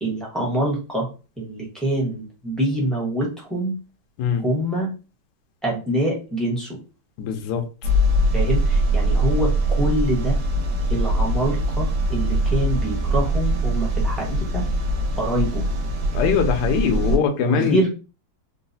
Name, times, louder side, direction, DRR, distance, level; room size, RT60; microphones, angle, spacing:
voice 1, 0.0-1.1 1.4-3.7 4.4-4.9 5.6-6.8 8.3-10.4 10.9-14.6 15.2-15.6 16.9-17.9, right 1 dB, ahead, 0.5 m, -25 dB
voice 2, 7.2-7.6 16.1-17.8, left 7 dB, 70° left, 1.1 m, -22 dB
sound 1, 7.8-17.2, right 1 dB, 70° right, 0.9 m, -22 dB
3.8 x 2.3 x 2.6 m
omnidirectional pair, 2.4 m